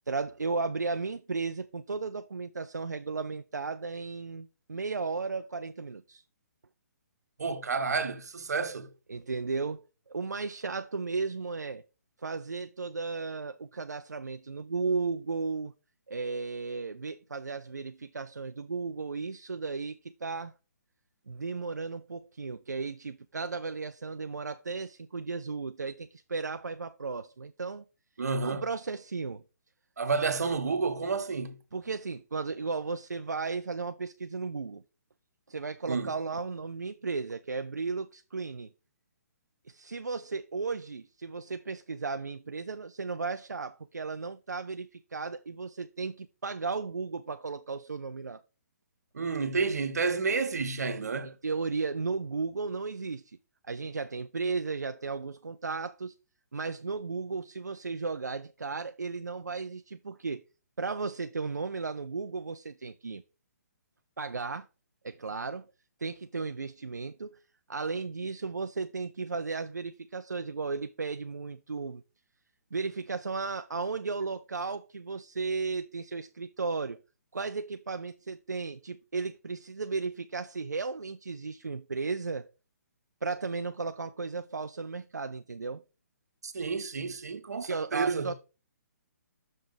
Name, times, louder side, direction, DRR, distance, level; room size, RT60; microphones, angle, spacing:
voice 1, 0.1-6.2 9.1-11.8 12.2-15.7 16.1-20.5 21.3-27.8 28.4-29.4 31.7-34.8 35.5-38.7 39.7-48.4 51.2-53.4 53.6-56.1 56.5-60.4 60.8-63.2 64.2-64.7 65.0-65.7 66.0-67.4 67.7-72.0 72.7-77.0 77.3-82.5 83.2-85.8 87.7-88.3, right 4 dB, 85° right, 0.4 m, -35 dB
voice 2, 7.4-8.9 28.2-28.6 30.0-31.6 35.9-36.1 49.1-51.3 86.4-88.3, right 4 dB, 70° right, 1.0 m, -30 dB
6.3 x 3.6 x 4.9 m
figure-of-eight pair, 135°, 9 cm